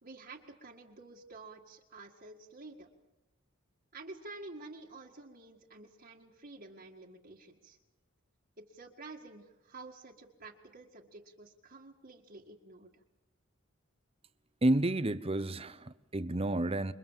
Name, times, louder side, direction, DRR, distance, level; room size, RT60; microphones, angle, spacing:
voice 1, 0.0-2.9 3.9-7.8 8.7-13.0, right 3 dB, 45° right, 2.0 m, -50 dB
voice 2, 14.6-16.9, right 1 dB, 30° right, 0.9 m, -30 dB
27.5 x 23.5 x 7.4 m
head